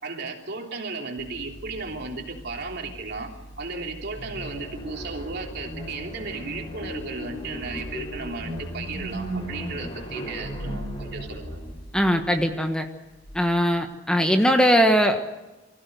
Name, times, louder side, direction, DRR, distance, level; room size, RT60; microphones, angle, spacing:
voice 1, 0.0-11.6, right 3 dB, 60° right, 2 dB, 3.3 m, -35 dB
sound 1, 1.2-13.8, equal, 60° left, 7.2 m, -43 dB
sound 2, 4.1-11.8, equal, 30° left, 5.0 m, -36 dB
voice 2, 11.9-12.9 13.3-15.2, equal, 5° left, 5 dB, 1.3 m, -20 dB
24.5 x 16.0 x 8.0 m, 1.1 s
head